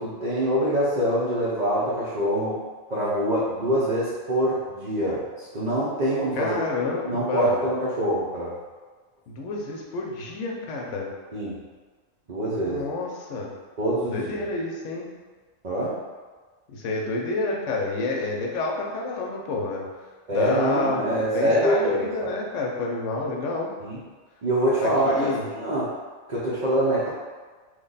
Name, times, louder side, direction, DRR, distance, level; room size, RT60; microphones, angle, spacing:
voice 1, 0.0-2.6 2.9-6.6 7.1-8.6 11.3-11.6 12.3-12.8 13.8-14.4 15.6-16.0 20.3-22.3 23.8-24.0 24.4-25.9 26.3-27.1, right 1 dB, 45° right, -8 dB, 0.6 m, -24 dB
voice 2, 6.4-7.6 9.3-11.1 12.6-13.5 14.0-15.1 16.7-19.9 20.3-23.7 24.8-25.4, left 3 dB, 70° left, -1 dB, 1.0 m, -29 dB
3.1 x 2.2 x 3.9 m, 1.4 s
omnidirectional pair, 1.4 m